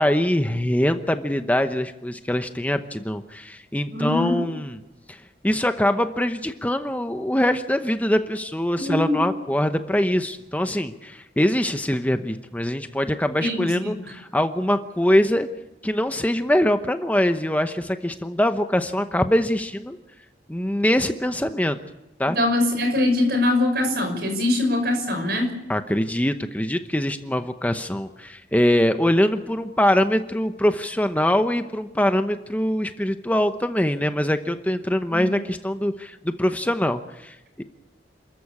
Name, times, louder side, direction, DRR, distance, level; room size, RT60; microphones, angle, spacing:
voice 1, 0.0-4.8 5.1-15.5 15.8-20.0 20.5-21.8 22.2-22.4 25.7-37.6, left 1 dB, 10° left, 8 dB, 0.9 m, -23 dB
voice 2, 3.9-4.3 8.8-9.2 13.4-13.9 22.3-25.5 35.1-35.3, left 2 dB, 60° right, 6 dB, 5.7 m, -22 dB
28.0 x 14.0 x 8.5 m, 0.99 s
head